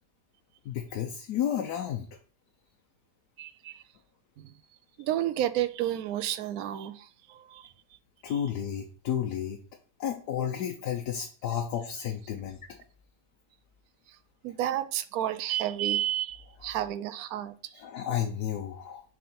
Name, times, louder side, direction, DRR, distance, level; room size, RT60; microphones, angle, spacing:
voice 1, 0.7-2.1 8.2-9.6 10.0-12.6 17.8-19.0, left 9 dB, 70° left, 1.2 m, -32 dB
voice 2, 3.4-3.8 4.4-4.5 5.0-7.7 8.3-8.4 14.1-14.2 14.4-17.8, right 12 dB, 70° right, 0.9 m, -31 dB
6.6 x 3.9 x 4.3 m
omnidirectional pair, 1.8 m